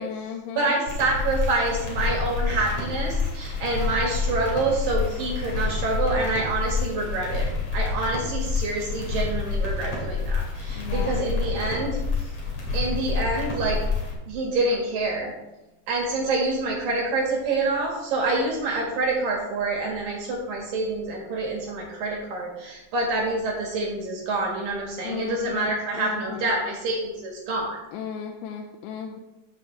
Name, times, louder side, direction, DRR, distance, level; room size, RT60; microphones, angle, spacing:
voice 1, 0.0-0.8 10.8-11.2 25.0-26.5 27.9-29.2, left 7 dB, 90° left, 3 dB, 3.0 m, -35 dB
voice 2, 0.6-7.5 7.7-12.0 12.7-13.8 14.3-15.3 15.9-27.8, right 2 dB, 60° right, -1 dB, 2.8 m, -27 dB
sound 1, 0.9-14.1, left 4 dB, 45° left, 2.4 m, -28 dB
13.5 x 6.8 x 3.2 m, 0.99 s
omnidirectional pair, 5.2 m